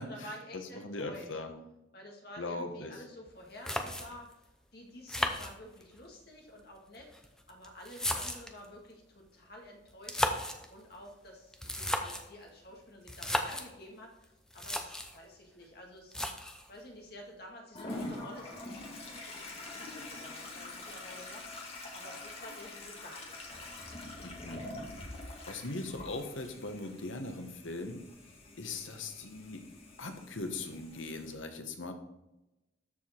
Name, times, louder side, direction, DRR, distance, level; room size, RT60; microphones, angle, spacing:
voice 1, 0.0-1.4 1.9-4.4 4.7-10.4 10.7-16.2 16.7-19.5 19.7-23.8, left 1 dB, 55° left, 0 dB, 2.1 m, -50 dB
voice 2, 0.5-1.5 2.4-3.0 24.2-24.7 25.5-28.0 28.6-29.6 30.0-31.9, left 2 dB, 85° left, 6 dB, 1.3 m, -39 dB
sound 1, 3.3-3.4 3.6-4.3 5.1-6.0 6.9-8.6 9.9-10.7 11.5-12.3 13.1-13.7 14.2-14.3 14.5-15.2 16.1-16.7, left 1 dB, 5° left, 0.7 m, -34 dB
Toilet flush, 17.7-31.3, left 2 dB, 30° left, 1.8 m, -45 dB
13.0 x 5.0 x 4.5 m, 0.95 s
head